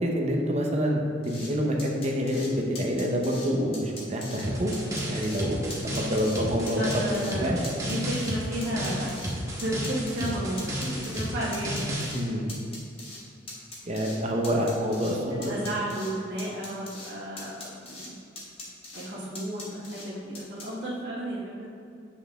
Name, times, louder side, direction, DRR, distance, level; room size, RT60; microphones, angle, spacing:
voice 1, 0.0-4.7 5.0-6.8 7.1-7.6 12.1-12.5 13.9-15.5, equal, 35° right, 0 dB, 0.8 m, -27 dB
sound 1, 1.2-1.5 1.8-2.5 2.8-3.5 3.7-4.4 4.7-5.4 5.7-6.4 6.7-7.3 7.6-9.3 9.6-11.3 11.5-12.2 12.5-13.2 13.5-14.2 14.4-15.2 15.4-16.1 16.4-17.1 17.4-18.1 18.4-19.1 19.3-20.1 20.3-20.7, left 2 dB, 30° left, 1.6 m, -41 dB
sound 2, 4.4-12.1, equal, 20° right, 1.1 m, -33 dB
voice 2, 6.7-9.2 9.6-12.3 15.4-18.1 18.9-21.7, right 1 dB, 65° right, -9 dB, 1.4 m, -33 dB
8.0 x 5.7 x 3.6 m, 2.6 s
head